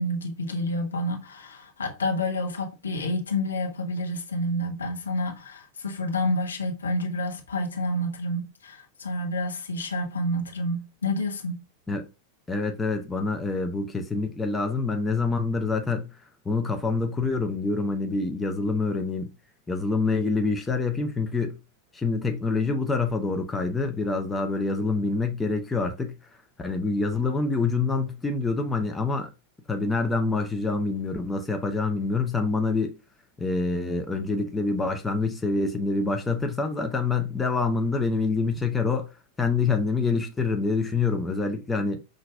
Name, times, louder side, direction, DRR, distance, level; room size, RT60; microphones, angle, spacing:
voice 1, 0.0-11.6, left 1 dB, 70° left, 1.0 m, -29 dB
voice 2, 12.5-16.1 16.4-19.3 19.7-21.6 21.9-26.1 26.6-29.3 29.7-33.0 33.4-39.1 39.4-42.0, left 3 dB, 10° left, 0.7 m, -26 dB
5.8 x 2.6 x 2.2 m
figure-of-eight pair, 90°, 0 cm